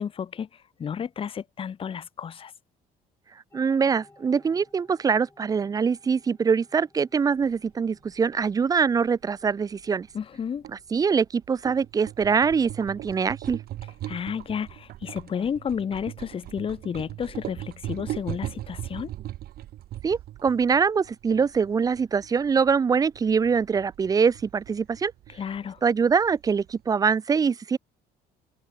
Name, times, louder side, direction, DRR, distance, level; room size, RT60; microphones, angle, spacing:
voice 1, 0.0-2.5 10.1-10.7 14.1-19.1 25.3-25.8, left 7 dB, 30° left, 0.7 m, -32 dB
sound 1, 3.5-18.3, left 2 dB, 15° left, 4.6 m, -62 dB
voice 2, 3.5-10.1 10.7-13.6 20.0-25.1 25.8-27.8, right 6 dB, 20° right, 0.3 m, -23 dB
sound 2, 7.4-26.9, right 14 dB, 65° right, 1.2 m, -40 dB
cardioid pair, 110°, 17 cm